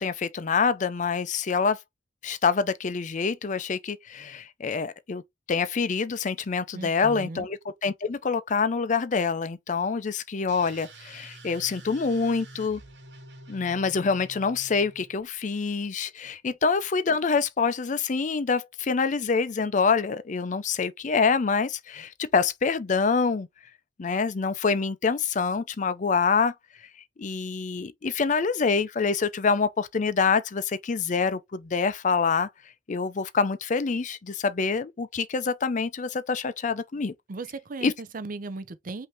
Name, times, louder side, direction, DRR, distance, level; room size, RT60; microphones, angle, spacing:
voice 1, 0.0-1.8 2.2-5.2 5.5-12.8 13.5-23.5 24.0-26.5 27.2-32.5 32.9-37.1 37.8-37.9, left 5 dB, 40° left, 0.5 m, -26 dB
voice 2, 6.7-7.5 37.3-39.1, right 3 dB, 45° right, 0.5 m, -37 dB
sound 1, 10.5-15.2, right 2 dB, 65° right, 1.3 m, -47 dB
5.5 x 2.7 x 3.4 m
head